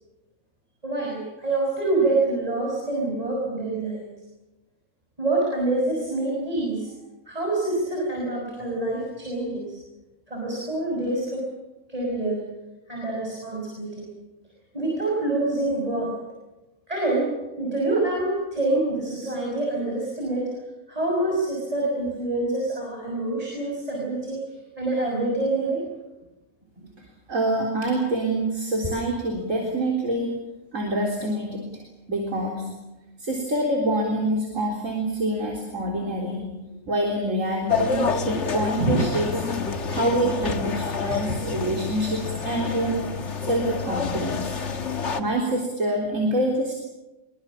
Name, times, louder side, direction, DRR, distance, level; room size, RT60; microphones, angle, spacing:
voice 1, 0.8-4.0 5.2-6.9 7.3-9.8 10.3-11.5 11.9-12.4 12.9-14.1 14.7-16.1 16.9-20.5 20.9-24.4 24.8-25.8 38.8-39.0 41.6-41.8, right 2 dB, 25° right, -2 dB, 6.3 m, -26 dB
voice 2, 27.3-30.3 30.7-31.8 32.1-32.7 33.2-36.5 36.9-39.3 39.9-43.0 43.4-44.6 45.2-46.7, right 1 dB, 70° right, -1 dB, 4.1 m, -26 dB
sound 1, 37.7-45.2, left 5 dB, 55° left, 1.8 m, -28 dB
24.5 x 23.5 x 7.4 m, 1.0 s
omnidirectional pair, 1.4 m